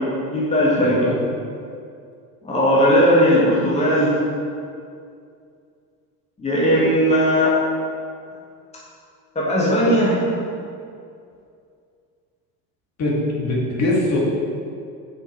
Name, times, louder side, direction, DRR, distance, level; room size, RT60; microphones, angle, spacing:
voice 1, 0.2-1.1 2.4-4.2 6.4-7.6 9.3-10.3, equal, 15° left, -7 dB, 1.7 m, -17 dB
voice 2, 0.8-1.2 13.0-14.2, left 1 dB, 30° left, -5 dB, 1.9 m, -22 dB
6.7 x 5.6 x 4.8 m, 2.4 s
figure-of-eight pair, 65°, 50 cm